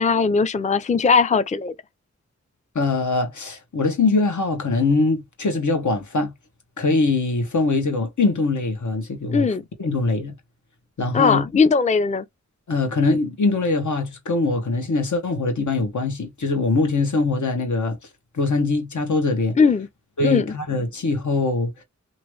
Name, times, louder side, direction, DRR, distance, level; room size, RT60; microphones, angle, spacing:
voice 1, 0.0-1.7 9.3-9.6 11.1-12.2 19.6-19.9 20.2-20.5, left 5 dB, 25° left, 0.4 m, -19 dB
voice 2, 2.7-6.3 6.8-9.5 9.8-10.3 11.0-11.4 12.7-18.0 18.3-19.6 20.2-21.7, left 3 dB, 85° left, 1.1 m, -22 dB
2.9 x 2.5 x 3.1 m
wide cardioid pair, 50°, 29 cm